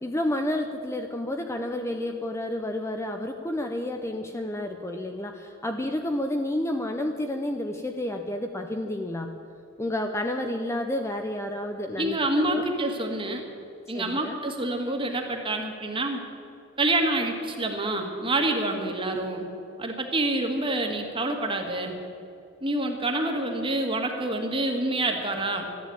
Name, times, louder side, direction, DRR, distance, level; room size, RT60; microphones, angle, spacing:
voice 1, 0.0-9.3 9.8-12.6 13.9-14.4, left 1 dB, 15° left, 4 dB, 0.6 m, -30 dB
voice 2, 12.0-13.4 13.9-16.2 16.8-19.5 19.8-22.0 22.6-25.7, right 2 dB, 25° right, 3 dB, 1.7 m, -27 dB
13.5 x 10.5 x 8.5 m, 2.6 s
head